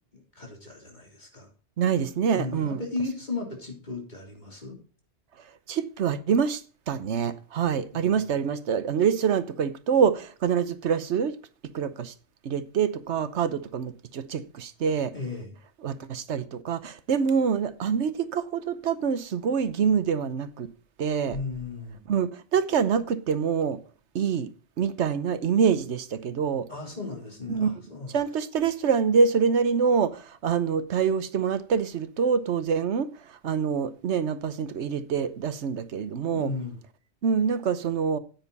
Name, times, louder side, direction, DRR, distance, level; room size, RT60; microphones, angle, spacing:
voice 1, 0.4-1.5 2.3-4.7 7.9-8.3 15.1-15.5 21.3-22.0 26.7-28.2 36.3-36.8, left 3 dB, 40° left, 3.5 m, -35 dB
voice 2, 1.8-2.8 5.7-11.4 11.7-12.1 12.4-15.1 15.8-20.7 21.0-21.4 22.1-23.8 24.1-24.5 24.8-26.7 27.5-27.7 28.1-36.5 37.2-38.2, right 6 dB, 80° right, 1.2 m, -26 dB
9.5 x 9.1 x 4.1 m
omnidirectional pair, 1.2 m